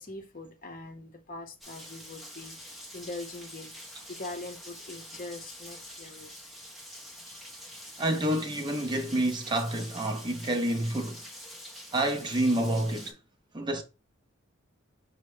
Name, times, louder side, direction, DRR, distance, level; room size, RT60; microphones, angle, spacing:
voice 1, 0.0-3.8 4.1-6.4 7.2-7.4, left 2 dB, 40° left, 0.8 m, -42 dB
Rain, 1.6-13.1, equal, ahead, 1.0 m, -46 dB
voice 2, 8.0-11.2 11.9-13.1 13.5-13.8, right 1 dB, 20° right, 0.5 m, -28 dB
5.4 x 2.1 x 4.6 m
head